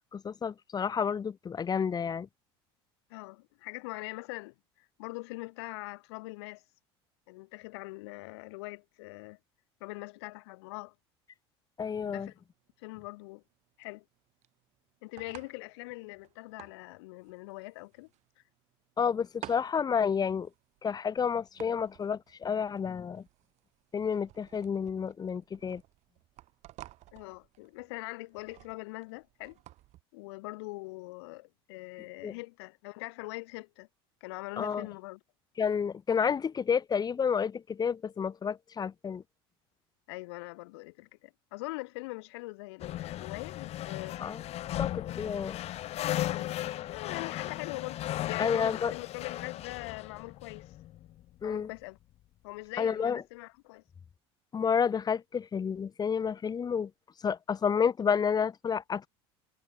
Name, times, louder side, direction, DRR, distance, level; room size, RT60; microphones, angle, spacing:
voice 1, 0.1-2.3 11.8-12.3 19.0-20.5 20.8-23.2 23.9-25.8 32.2-32.3 34.6-34.9 35.6-39.2 44.2-44.4 44.8-45.6 48.4-48.9 51.4-51.7 52.8-53.2 54.5-56.9 57.2-59.1, left 6 dB, 30° left, 1.9 m, -30 dB
voice 2, 3.1-6.6 7.3-9.4 9.8-10.9 12.1-12.4 12.8-13.4 13.8-14.0 15.0-18.1 27.1-29.6 30.1-33.9 34.2-35.2 40.1-44.2 45.2-45.3 46.3-50.7 51.4-52.0 52.4-53.8, left 24 dB, 80° left, 4.4 m, -42 dB
sound 1, 12.3-30.0, right 16 dB, 60° right, 7.6 m, -54 dB
sound 2, 42.8-51.4, left 14 dB, 50° left, 1.2 m, -36 dB
supercardioid pair, 90°, 14 cm